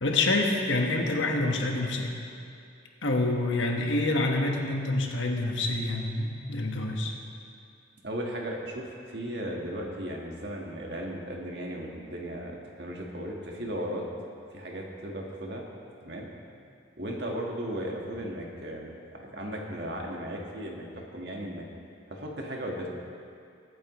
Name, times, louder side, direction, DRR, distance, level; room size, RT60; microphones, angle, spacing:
voice 1, 0.0-2.1 3.0-7.1, left 2 dB, 75° left, 1 dB, 1.4 m, -27 dB
voice 2, 8.0-14.1 14.5-15.7 16.0-16.3 17.0-21.6 22.1-22.9, equal, 55° right, -1 dB, 1.7 m, -36 dB
22.0 x 8.8 x 3.2 m, 2.4 s
head